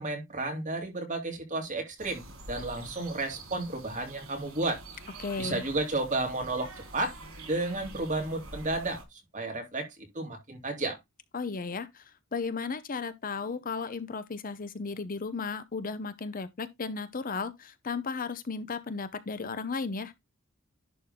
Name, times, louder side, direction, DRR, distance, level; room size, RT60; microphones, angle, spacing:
voice 1, 0.0-4.8 5.4-7.1 7.5-11.0, right 2 dB, 35° right, 2.7 m, -32 dB
sound 1, 2.0-9.0, right 2 dB, 90° right, 3.6 m, -46 dB
voice 2, 5.2-5.6 11.3-20.1, left 4 dB, 40° left, 0.7 m, -35 dB
11.0 x 3.8 x 3.6 m
head